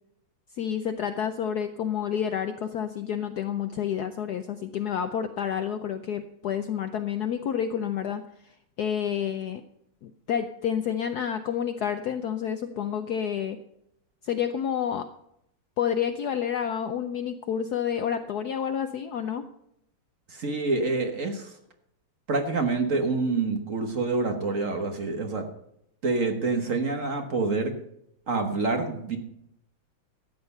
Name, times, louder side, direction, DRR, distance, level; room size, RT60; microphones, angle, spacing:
voice 1, 0.5-8.5 8.8-9.6 10.0-13.6 14.2-15.1 15.8-19.5, left 8 dB, 70° left, 8 dB, 1.0 m, -29 dB
voice 2, 20.3-21.5 22.3-25.5 26.0-27.7 28.3-29.2, right 3 dB, 45° right, 5 dB, 1.4 m, -27 dB
13.5 x 8.8 x 5.5 m, 0.77 s
omnidirectional pair, 2.3 m